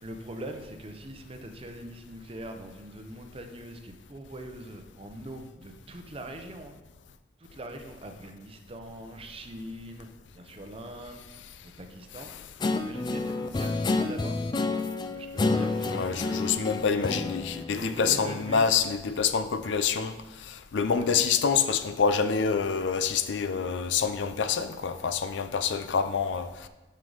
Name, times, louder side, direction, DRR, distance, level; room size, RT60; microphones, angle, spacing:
voice 1, 0.0-6.8 7.4-10.1 10.3-11.2 11.6-12.3 12.8-14.4 15.1-16.5 17.7-18.8 20.9-21.2, right 1 dB, 30° right, 5 dB, 0.7 m, -42 dB
Guitar, 12.6-18.4, left 3 dB, 25° left, 0.3 m, -29 dB
voice 2, 15.9-26.7, left 6 dB, 80° left, 10 dB, 0.5 m, -27 dB
7.8 x 5.6 x 3.9 m, 1.1 s
head